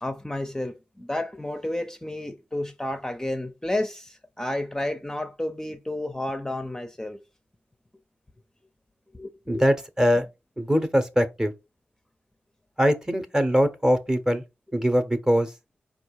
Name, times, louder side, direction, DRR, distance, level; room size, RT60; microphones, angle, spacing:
voice 1, 0.0-7.2 9.1-9.7, left 1 dB, 15° left, 0.7 m, -31 dB
voice 2, 9.5-10.2 10.6-11.5 12.8-14.4 14.7-15.5, equal, 15° right, 0.9 m, -22 dB
4.4 x 2.4 x 4.5 m
cardioid pair, 55°, 4 cm